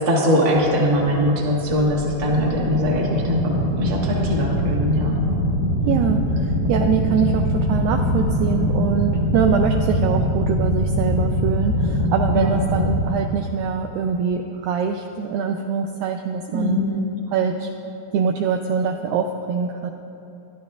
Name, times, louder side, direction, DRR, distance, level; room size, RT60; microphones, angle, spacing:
voice 1, 0.0-5.2 12.3-12.5 16.5-17.0, equal, 45° right, -3 dB, 1.7 m, -21 dB
sound 1, 0.5-13.0, equal, 60° right, 2.5 m, -23 dB
sound 2, 1.6-11.1, left 5 dB, 75° left, 0.5 m, -37 dB
voice 2, 5.9-16.8 17.3-17.7 18.1-19.9, right 7 dB, 85° right, 4 dB, 2.0 m, -23 dB
24.5 x 11.5 x 2.4 m, 2.8 s
omnidirectional pair, 4.6 m